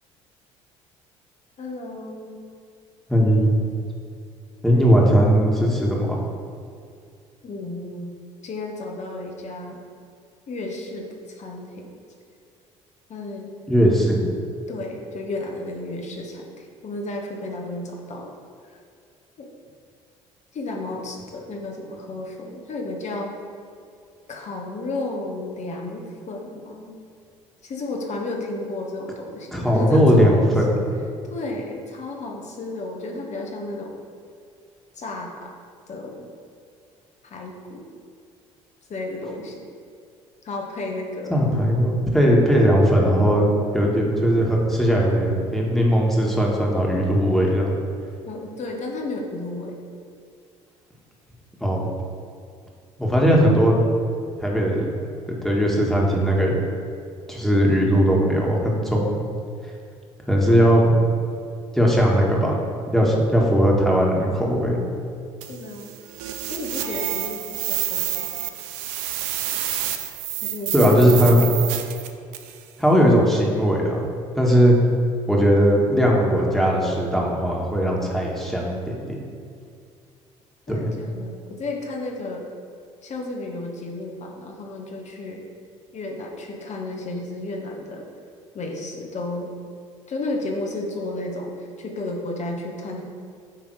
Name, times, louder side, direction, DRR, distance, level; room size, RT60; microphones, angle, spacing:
voice 1, 1.6-2.4 7.4-8.1 8.4-9.8 10.5-11.8 13.1-13.5 14.7-18.3 19.4-19.5 20.5-23.3 24.3-26.9 27.6-30.5 31.3-33.9 34.9-35.5 35.9-36.3 37.2-37.8 38.9-39.6 40.4-41.4 48.3-49.8 65.5-65.9 66.5-67.4 67.7-68.3 70.4-71.7 80.7-82.4 83.0-85.4 85.9-88.0 88.5-89.5 90.1-93.0, left 2 dB, 45° left, 1 dB, 1.4 m, -32 dB
voice 2, 3.1-3.6 4.6-6.2 13.7-14.2 29.5-30.7 41.3-43.5 43.7-47.8 51.6-51.8 53.0-53.7 54.4-54.9 55.4-56.6 57.3-59.2 60.3-60.9 61.7-62.6 62.9-64.8 70.7-71.4 72.8-74.0 74.3-74.8 75.3-78.9 80.7-80.9, equal, ahead, -2 dB, 1.8 m, -18 dB
sound 1, 65.4-72.6, right 12 dB, 75° right, 0.6 m, -29 dB
8.8 x 3.5 x 4.8 m, 2.4 s
hypercardioid pair, 55°, 16 cm